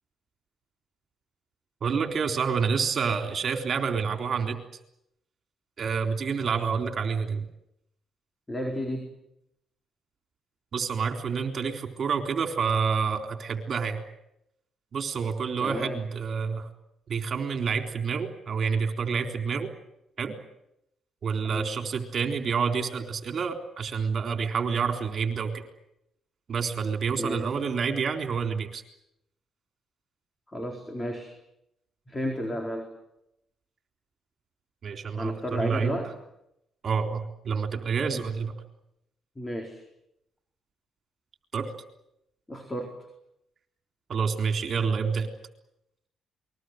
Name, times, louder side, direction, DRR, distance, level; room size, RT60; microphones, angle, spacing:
voice 1, 1.8-4.6 5.8-7.5 10.7-14.0 14.9-16.7 17.1-19.7 20.2-20.3 21.2-25.6 26.5-28.8 34.8-36.0 36.8-38.5 41.5-41.7 44.1-45.3, right 6 dB, 50° right, 6 dB, 3.8 m, -28 dB
voice 2, 8.5-9.1 15.6-16.0 21.4-21.7 27.2-27.5 30.5-31.3 32.1-32.9 35.1-36.1 39.4-39.8 42.5-43.1, equal, 20° left, 3 dB, 4.2 m, -33 dB
28.5 x 21.5 x 8.0 m, 0.81 s
cardioid pair, 90°, 0 cm